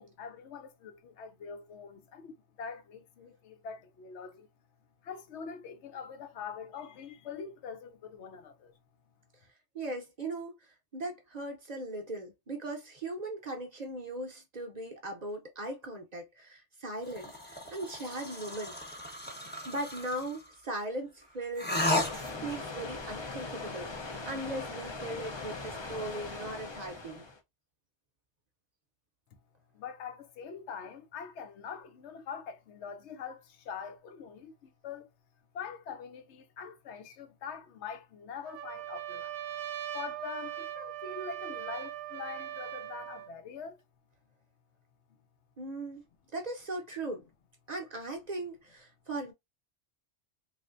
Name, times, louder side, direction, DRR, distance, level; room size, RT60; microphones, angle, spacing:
voice 1, 0.0-4.5 5.0-8.7 29.7-35.1 35.5-39.3 39.9-43.8, left 6 dB, 80° left, 0.9 m, -43 dB
voice 2, 9.7-10.5 10.9-18.7 19.6-21.8 22.4-27.2 45.6-46.0 46.3-47.3 47.7-49.3, right 2 dB, 45° right, 0.7 m, -38 dB
sound 1, 17.1-20.5 21.6-22.6, left 1 dB, 10° left, 0.7 m, -34 dB
sound 2, 22.0-27.4, left 3 dB, 35° left, 0.4 m, -40 dB
Trumpet, 38.5-43.3, right 12 dB, 80° right, 0.9 m, -40 dB
3.2 x 2.5 x 2.5 m
omnidirectional pair, 1.2 m